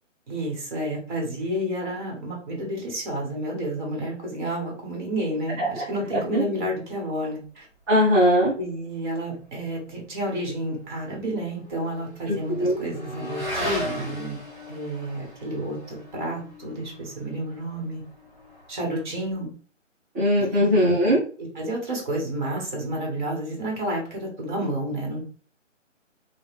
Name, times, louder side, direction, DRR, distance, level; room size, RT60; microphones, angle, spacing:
voice 1, 0.3-7.7 8.6-14.4 14.7-18.0 18.7-19.5 20.4-20.7 21.6-25.2, right 1 dB, 40° right, 0 dB, 1.8 m, -30 dB
voice 2, 7.9-8.5 12.3-12.7 20.1-21.2, equal, 15° right, -9 dB, 0.8 m, -20 dB
Motorcycle / Accelerating revving vroom, 10.6-19.3, left 1 dB, 15° left, 1.7 m, -38 dB
3.5 x 2.4 x 3.4 m, 0.42 s
figure-of-eight pair, 150°, 38 cm